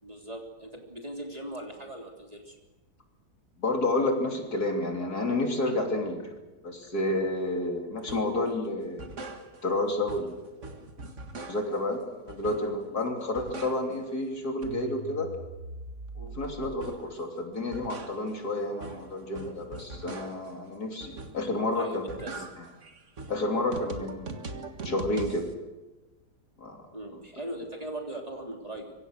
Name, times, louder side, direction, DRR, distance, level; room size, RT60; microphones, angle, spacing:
voice 1, 0.0-2.6 21.7-22.4 26.9-28.9, right 1 dB, 20° right, 2 dB, 3.3 m, -39 dB
voice 2, 3.6-6.3 6.6-9.1 9.6-10.7 11.5-12.0 12.2-15.3 16.2-22.0 22.4-22.5 23.3-25.5 26.6-26.8, left 2 dB, 65° left, 3 dB, 3.7 m, -30 dB
sound 1, 8.1-8.4 8.8-9.8 10.1-11.9 12.3-12.9 13.2-14.2 14.4-17.2 17.5-20.6 21.0-21.6 21.9-25.5, right 3 dB, 45° right, 2.1 m, -42 dB
25.5 x 23.5 x 6.5 m, 1.1 s
omnidirectional pair, 1.8 m